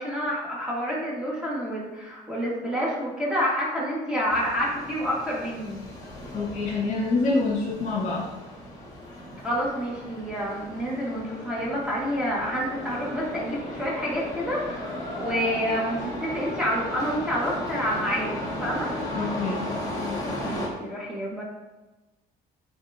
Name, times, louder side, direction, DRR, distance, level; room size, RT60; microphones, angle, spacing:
voice 1, 0.0-5.8 9.4-18.9 20.4-21.4, equal, 5° right, -6 dB, 2.2 m, -28 dB
sound 1, 4.3-20.7, left 1 dB, 20° left, 2.1 m, -35 dB
voice 2, 6.3-8.3 19.1-19.7, left 3 dB, 45° left, -3 dB, 2.0 m, -26 dB
9.3 x 4.2 x 3.0 m, 1.1 s
cardioid pair, 110°, 17 cm